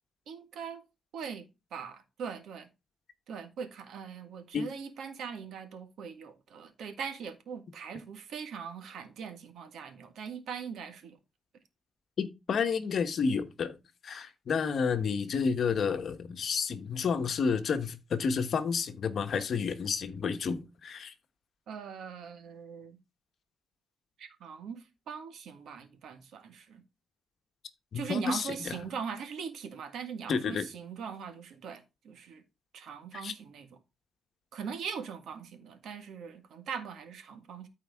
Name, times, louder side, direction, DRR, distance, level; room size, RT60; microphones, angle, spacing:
voice 1, 0.3-0.8 1.1-2.7 3.3-11.2 21.7-23.0 24.2-26.8 27.9-32.4 32.7-33.8 34.5-37.7, right 6 dB, 75° right, 1.7 m, -41 dB
voice 2, 12.2-13.8 14.0-21.1 27.9-28.8 30.3-30.7 33.2-33.3, left 5 dB, 50° left, 1.2 m, -30 dB
13.5 x 4.7 x 3.6 m
cardioid pair, 145°, 0 cm